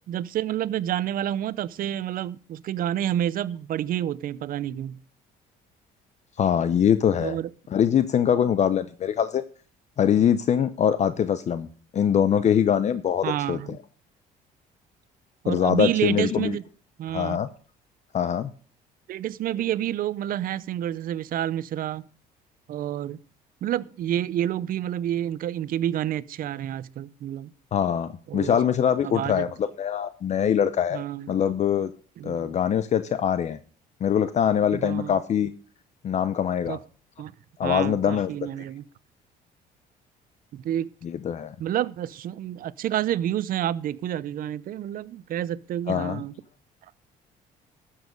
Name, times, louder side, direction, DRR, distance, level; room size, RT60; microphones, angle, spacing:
voice 1, 0.1-5.0 7.2-7.5 13.2-13.8 15.4-16.6 17.0-17.4 19.1-22.1 22.7-23.2 23.6-27.5 28.3-28.6 29.0-29.5 30.9-31.4 32.2-32.6 34.7-35.2 36.7-36.8 37.2-37.3 37.6-38.8 40.5-40.9 41.6-46.3, right 11 dB, 55° right, 0.6 m, -29 dB
voice 2, 6.4-7.4 7.7-9.4 10.0-11.7 11.9-13.8 15.5-16.6 17.1-17.5 18.1-18.5 27.7-31.9 32.2-33.6 34.0-35.5 36.0-36.8 37.6-38.3 41.0-41.5 45.9-46.2, left 8 dB, 45° left, 0.6 m, -23 dB
12.5 x 7.4 x 5.2 m
cardioid pair, 110°, 17 cm